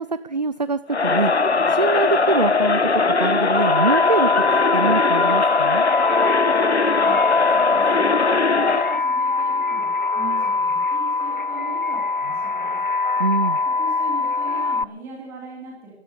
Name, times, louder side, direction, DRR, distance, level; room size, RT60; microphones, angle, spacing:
voice 1, 0.0-1.3 1.7-4.4 4.7-5.8 13.2-13.6, right 3 dB, 40° right, 14 dB, 0.5 m, -24 dB
Crowd, 0.9-9.0, left 4 dB, 75° left, 1.1 m, -19 dB
sound 1, 3.6-14.8, left 3 dB, 50° left, 0.6 m, -23 dB
voice 2, 6.9-8.3 8.6-12.8 13.8-15.9, right 3 dB, 5° right, -3 dB, 3.0 m, -39 dB
14.0 x 10.5 x 9.7 m, 0.83 s
figure-of-eight pair, 160°, 33 cm